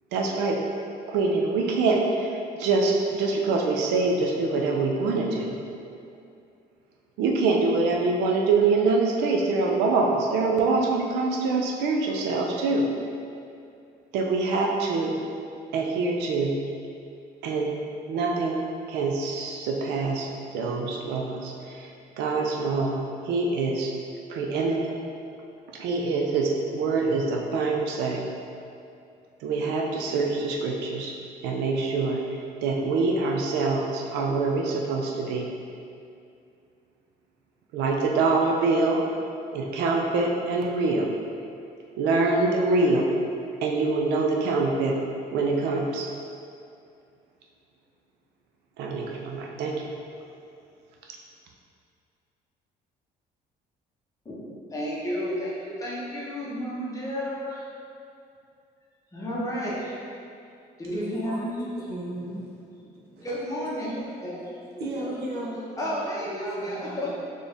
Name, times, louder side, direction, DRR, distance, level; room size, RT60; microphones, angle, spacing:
voice 1, 0.1-0.6 1.1-5.5 7.2-12.9 14.1-15.1 15.7-16.6 17.4-17.8 18.1-18.6 18.9-20.3 20.5-21.9 22.2-23.0 23.3-23.9 24.3-24.9 25.7-28.3 29.4-31.1 31.4-35.5 37.7-39.0 39.5-41.1 42.0-43.2 43.6-44.9 45.3-46.0 48.8-49.7, right 3 dB, 85° right, 0 dB, 0.5 m, -25 dB
voice 2, 54.2-57.7 59.1-60.0 60.8-61.9 62.7-64.4 64.7-65.1 65.8-67.2, equal, 20° left, -7 dB, 1.1 m, -32 dB
voice 3, 60.9-61.4 61.9-62.4 64.8-65.8 66.6-66.9, right 1 dB, 70° right, -5 dB, 1.1 m, -34 dB
4.3 x 3.2 x 3.4 m, 2.5 s
cardioid pair, 110°, 17 cm